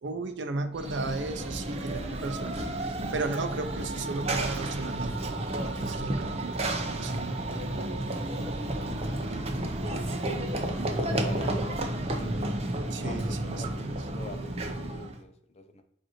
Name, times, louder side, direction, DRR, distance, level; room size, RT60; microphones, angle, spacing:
voice 1, 0.0-5.4 5.8-7.4 12.9-14.0, right 3 dB, 75° right, 8 dB, 0.5 m, -35 dB
Run / Train, 0.7-15.2, right 1 dB, 35° right, 0.6 m, -32 dB
voice 2, 8.5-9.3 9.6-10.6 11.1-12.5 13.0-15.8, left 1 dB, 35° left, 7 dB, 0.5 m, -44 dB
6.4 x 2.6 x 3.0 m, 0.71 s
head